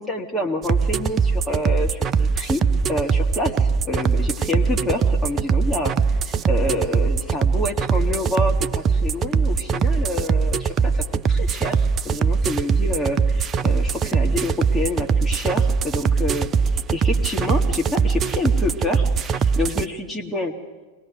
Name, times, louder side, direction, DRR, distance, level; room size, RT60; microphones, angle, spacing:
voice 1, 0.0-2.6 2.9-5.9 6.5-20.6, left 1 dB, 5° left, -1 dB, 1.8 m, -27 dB
sound 1, 0.6-19.8, right 5 dB, 25° right, 0.6 m, -21 dB
24.5 x 18.5 x 6.1 m, 1.3 s
figure-of-eight pair, 90°, 0 cm